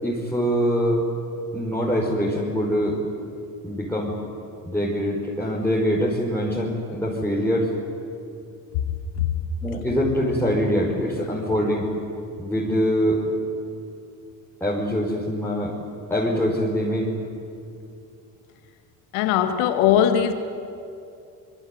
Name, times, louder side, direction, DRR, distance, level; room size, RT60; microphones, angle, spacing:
voice 1, 0.0-1.0 1.5-3.0 3.6-4.2 4.7-7.7 9.6-11.9 12.4-13.2 14.6-15.7 16.1-17.1, equal, 5° left, -5 dB, 5.8 m, -23 dB
voice 2, 19.1-20.3, left 10 dB, 75° left, 8 dB, 2.1 m, -20 dB
25.5 x 22.5 x 9.6 m, 2.6 s
hypercardioid pair, 65°, 50 cm